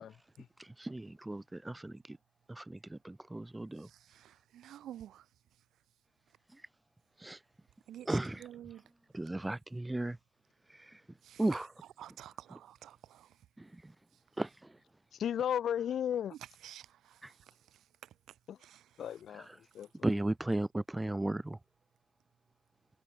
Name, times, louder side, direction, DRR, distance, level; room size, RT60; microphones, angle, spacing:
voice 1, 0.0-0.5 15.1-16.3 18.5-18.6 19.0-20.2, left 9 dB, 65° left, 2.7 m, -35 dB
voice 2, 0.6-2.2 2.5-3.9 7.2-7.4 8.1-8.4 9.1-10.2 10.7-11.0 11.4-11.7 13.6-13.9 14.4-14.7 20.0-21.6, right 2 dB, 10° right, 0.5 m, -35 dB
voice 3, 4.1-5.2 7.9-8.8 11.2-11.7 12.0-13.3 16.6-17.2 18.6-18.8, right 11 dB, 75° right, 0.6 m, -50 dB
cardioid pair, 90°, 0 cm